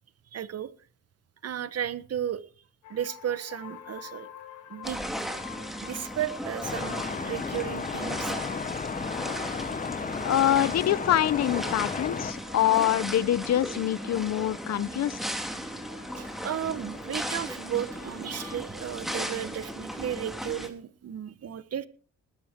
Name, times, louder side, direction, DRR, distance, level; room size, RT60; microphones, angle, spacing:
voice 1, 0.3-0.7 1.4-2.4 2.9-4.3 4.7-5.0 5.8-8.3 16.2-21.9, right 10 dB, 55° right, 1.4 m, -34 dB
sound 1, 2.8-18.6, left 9 dB, 75° left, 4.2 m, -49 dB
sound 2, 4.8-20.7, equal, ahead, 3.3 m, -36 dB
sound 3, 6.6-12.3, left 5 dB, 25° left, 0.8 m, -34 dB
voice 2, 10.2-15.2, left 12 dB, 60° left, 0.9 m, -25 dB
20.0 x 11.0 x 4.6 m
cardioid pair, 90°, 30 cm